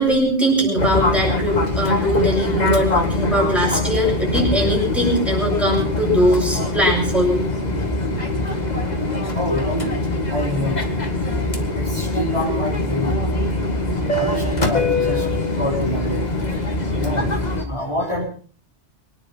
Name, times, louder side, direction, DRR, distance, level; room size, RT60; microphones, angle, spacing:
voice 1, 0.0-7.5, equal, ahead, -1 dB, 7.8 m, -20 dB
Fixed-wing aircraft airplane, 0.8-17.6, left 2 dB, 35° left, 2.2 m, -23 dB
voice 2, 9.3-9.9 10.3-10.9 11.7-13.9 14.1-18.2, equal, 25° right, -7 dB, 5.3 m, -27 dB
24.5 x 10.0 x 5.7 m, 0.44 s
omnidirectional pair, 1.2 m